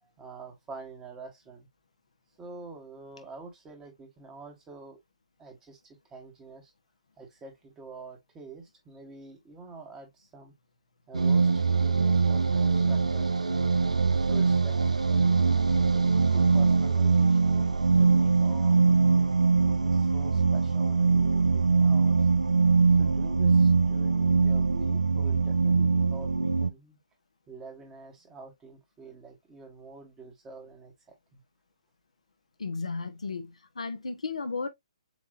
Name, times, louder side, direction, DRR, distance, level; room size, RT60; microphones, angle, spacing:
voice 1, 0.0-1.7 2.4-5.0 5.4-6.7 7.2-10.5 11.1-13.3 14.2-15.0 15.4-19.2 19.6-22.3 23.0-27.0 27.5-31.4, right 3 dB, 15° right, 1.4 m, -47 dB
sound 1, 11.1-26.7, right 4 dB, 85° right, 0.4 m, -23 dB
voice 2, 32.6-34.7, left 4 dB, 75° left, 1.0 m, -34 dB
7.3 x 2.6 x 2.5 m
figure-of-eight pair, 135°, 4 cm